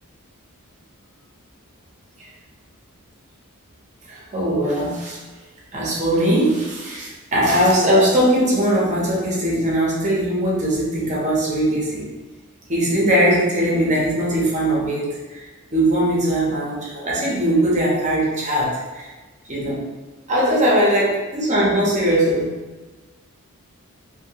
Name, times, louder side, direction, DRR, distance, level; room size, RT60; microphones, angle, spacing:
voice 1, 4.1-5.2 5.7-12.1 12.7-15.4 15.7-19.1 19.5-19.8 20.3-22.6, right 1 dB, 35° right, -4 dB, 0.7 m, -20 dB
2.8 x 2.6 x 2.8 m, 1.2 s
head